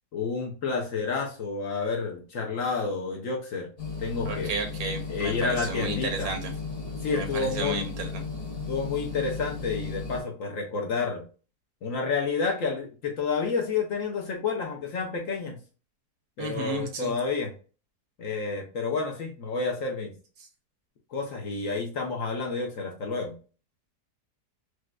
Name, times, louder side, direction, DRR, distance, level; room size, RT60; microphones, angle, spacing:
voice 1, 0.1-3.7 4.0-4.5 5.1-6.3 7.0-7.8 8.7-11.3 11.8-15.6 16.4-17.5 18.2-20.1 21.1-23.4, left 4 dB, 65° left, 1 dB, 0.9 m, -30 dB
sound 1, 3.8-10.2, left 4 dB, 40° left, 1.3 m, -35 dB
voice 2, 4.2-6.5 7.1-8.2 16.4-17.1 20.4-20.5, right 3 dB, 70° right, 5 dB, 1.2 m, -33 dB
4.8 x 2.1 x 2.2 m, 0.37 s
omnidirectional pair, 1.7 m